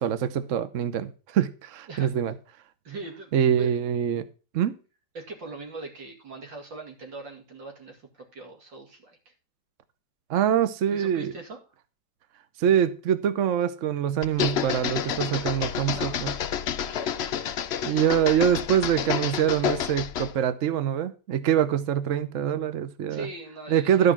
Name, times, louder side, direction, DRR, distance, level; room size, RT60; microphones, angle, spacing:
voice 1, 0.0-2.3 3.3-4.2 4.5-4.8 10.3-11.3 12.6-16.3 17.8-23.3 23.7-24.1, right 9 dB, 55° right, 0.9 m, -24 dB
voice 2, 2.8-3.7 5.1-9.2 10.9-11.6 15.8-16.3 16.7-17.2 23.1-24.1, right 3 dB, 75° right, 3.3 m, -40 dB
sound 1, 14.2-20.4, left 9 dB, 85° left, 0.5 m, -29 dB
12.5 x 4.9 x 6.0 m
omnidirectional pair, 2.0 m